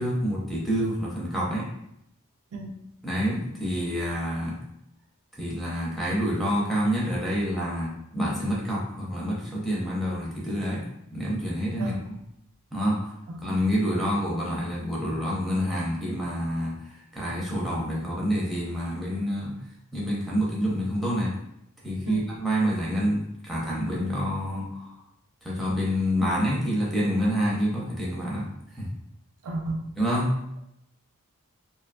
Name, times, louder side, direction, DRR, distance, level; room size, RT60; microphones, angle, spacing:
voice 1, 0.0-1.7 3.0-4.6 5.4-10.9 11.1-12.2 12.7-13.1 13.4-19.6 19.9-21.3 21.8-24.9 25.4-28.5 28.8-28.9 30.0-30.4, equal, ahead, -6 dB, 0.5 m, -27 dB
voice 2, 29.4-29.9, right 2 dB, 75° right, 4 dB, 0.4 m, -33 dB
2.6 x 2.2 x 2.4 m, 0.80 s
head